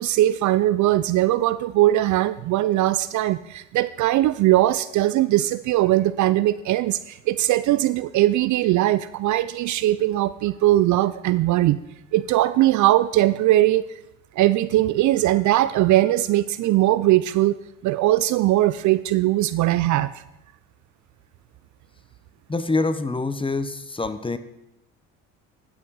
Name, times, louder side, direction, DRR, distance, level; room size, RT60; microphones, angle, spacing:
voice 1, 0.0-11.8 12.1-13.8 14.4-17.6 17.8-20.1, right 15 dB, 50° right, 15 dB, 0.4 m, -20 dB
voice 2, 22.5-24.4, left 3 dB, 15° left, 12 dB, 0.8 m, -25 dB
12.0 x 6.4 x 4.7 m, 0.87 s
hypercardioid pair, 65°, 39 cm